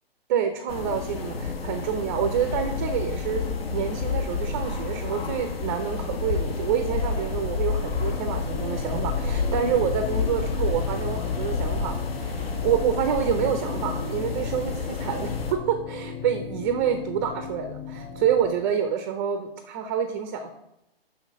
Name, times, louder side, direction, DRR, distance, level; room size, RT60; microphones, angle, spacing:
voice 1, 0.3-20.5, right 8 dB, 20° right, 8 dB, 0.4 m, -27 dB
sound 1, 0.7-15.5, left 4 dB, 70° left, 1.4 m, -29 dB
sound 2, 7.0-18.5, left 7 dB, 25° left, 2.9 m, -38 dB
6.0 x 5.8 x 6.4 m, 0.87 s
hypercardioid pair, 135°, 31 cm